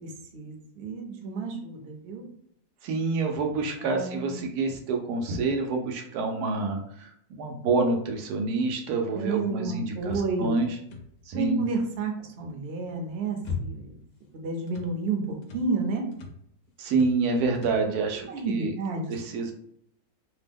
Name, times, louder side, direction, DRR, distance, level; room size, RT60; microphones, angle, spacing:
voice 1, 0.0-2.2 3.5-4.5 9.1-10.6 11.3-13.9 14.3-16.0 18.3-19.1, right 3 dB, 55° right, 2 dB, 0.8 m, -31 dB
voice 2, 2.8-10.7 11.3-11.6 16.8-18.7 19.1-19.5, right 3 dB, 90° right, 4 dB, 1.1 m, -27 dB
sound 1, 10.0-11.4 12.9-14.1 14.3-15.0 15.4-15.7 16.1-16.5 16.9-17.3 17.5-17.9, left 4 dB, 65° left, 0.8 m, -38 dB
2.9 x 2.1 x 3.4 m, 0.70 s
omnidirectional pair, 1.6 m